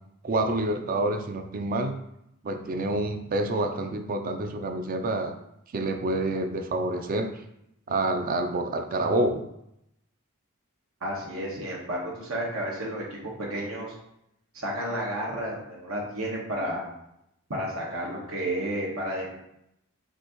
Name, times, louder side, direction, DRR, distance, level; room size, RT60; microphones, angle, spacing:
voice 1, 0.2-1.9 2.4-5.3 5.7-7.3 7.9-9.4, right 2 dB, 45° right, 6 dB, 0.4 m, -27 dB
voice 2, 11.0-13.9 14.5-16.8 17.5-19.4, right 1 dB, 85° right, -3 dB, 1.2 m, -32 dB
5.9 x 2.6 x 2.9 m, 0.80 s
head